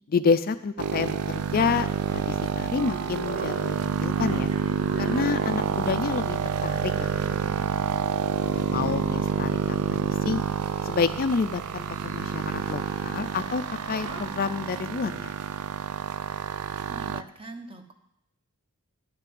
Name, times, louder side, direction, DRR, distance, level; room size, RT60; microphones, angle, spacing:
voice 1, 0.1-4.5 5.0-6.4 6.6-7.7 8.4-10.4 10.8-13.6 13.9-15.3, left 5 dB, 40° left, 11 dB, 0.4 m, -29 dB
sound 1, 0.8-17.2, right 7 dB, 90° right, 0.4 m, -28 dB
sound 2, 2.0-14.3, right 3 dB, 65° right, 1.5 m, -43 dB
voice 2, 16.9-17.9, right 2 dB, 25° right, 6 dB, 1.0 m, -42 dB
11.0 x 5.8 x 7.7 m, 0.79 s
head